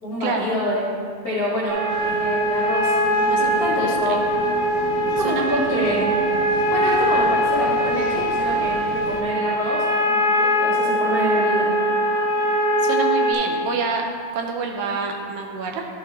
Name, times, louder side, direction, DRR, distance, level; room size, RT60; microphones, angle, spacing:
voice 1, 0.0-0.9 1.2-2.9 3.4-4.2 5.1-6.1 6.7-11.7, left 1 dB, 55° left, -8 dB, 1.0 m, -26 dB
sound 1, 1.7-13.3, right 1 dB, 55° right, 1.4 m, -21 dB
sound 2, 1.9-9.2, left 1 dB, 80° left, 1.7 m, -34 dB
voice 2, 3.3-4.0 5.2-6.1 12.8-14.1 14.3-15.9, right 4 dB, 75° right, 2 dB, 2.4 m, -27 dB
12.5 x 6.9 x 3.0 m, 2.2 s
omnidirectional pair, 4.5 m